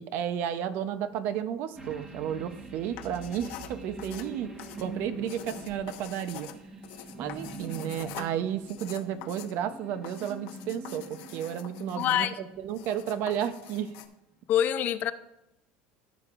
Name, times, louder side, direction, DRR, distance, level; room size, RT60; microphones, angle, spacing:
voice 1, 0.0-4.5 4.8-6.5 7.2-13.9, right 9 dB, 60° right, 11 dB, 0.7 m, -32 dB
sound 1, 1.7-13.5 13.9-14.0, right 2 dB, 20° right, 1.2 m, -44 dB
sound 2, 2.9-14.1, left 11 dB, 65° left, 1.0 m, -46 dB
voice 2, 12.0-12.4 14.5-15.1, left 10 dB, 45° left, 11 dB, 0.5 m, -25 dB
14.5 x 6.8 x 2.5 m, 0.90 s
supercardioid pair, 130°, 4 cm